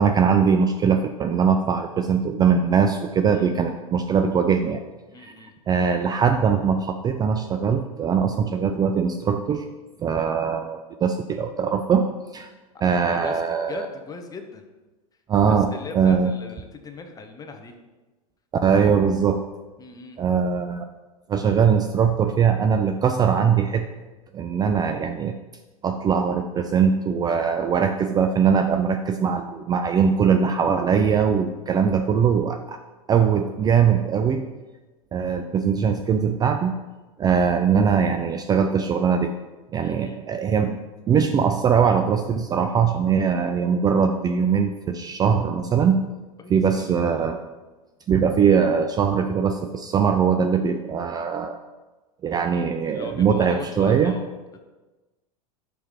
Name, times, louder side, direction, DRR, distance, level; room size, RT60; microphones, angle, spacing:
voice 1, 0.0-4.8 5.2-9.6 10.0-12.1 12.3-12.5 12.8-13.9 15.3-16.3 18.6-19.4 20.2-20.8 21.3-23.9 24.3-25.4 25.8-32.8 33.1-34.4 35.1-36.7 37.2-39.3 39.7-40.8 41.1-46.1 46.5-47.4 48.1-51.6 52.2-54.1, right 6 dB, 20° right, 7 dB, 0.3 m, -21 dB
voice 2, 5.1-5.5 13.0-14.7 15.4-17.7 19.8-20.2 39.8-40.2 46.4-47.0 52.8-54.6, left 3 dB, 20° left, 5 dB, 0.9 m, -40 dB
5.0 x 4.5 x 5.7 m, 1.2 s
hypercardioid pair, 105°, 19 cm